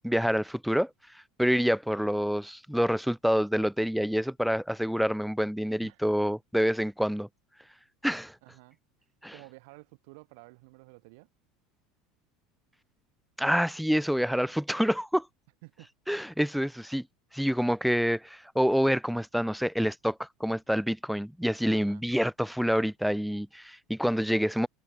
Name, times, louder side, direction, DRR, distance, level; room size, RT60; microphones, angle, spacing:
voice 1, 0.0-0.9 1.4-7.3 8.0-8.3 9.2-9.3 13.4-15.3 16.1-17.1 17.3-24.7, equal, ahead, 0.4 m, -27 dB
voice 2, 8.4-8.8 9.3-11.3 15.6-15.9 21.6-22.0, right 29 dB, 70° right, 1.2 m, -52 dB
hypercardioid pair, 90°, 0 cm